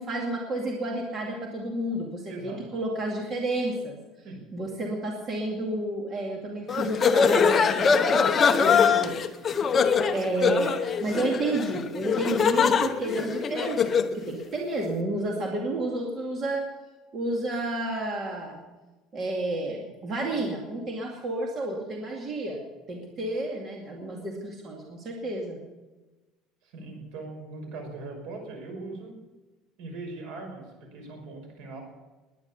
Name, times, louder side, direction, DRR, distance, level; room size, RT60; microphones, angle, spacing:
voice 1, 0.0-4.0 4.5-9.2 9.7-16.6 17.1-18.6 19.1-22.6 22.9-25.6, right 1 dB, 30° right, 0 dB, 2.4 m, -31 dB
voice 2, 2.3-2.6 4.2-4.4 26.6-29.1 29.8-30.6 30.9-31.8, right 3 dB, 70° right, 4 dB, 5.7 m, -39 dB
sound 1, 6.7-14.2, left 6 dB, 25° left, 0.9 m, -23 dB
20.0 x 10.5 x 7.0 m, 1.1 s
cardioid pair, 170°, 0 cm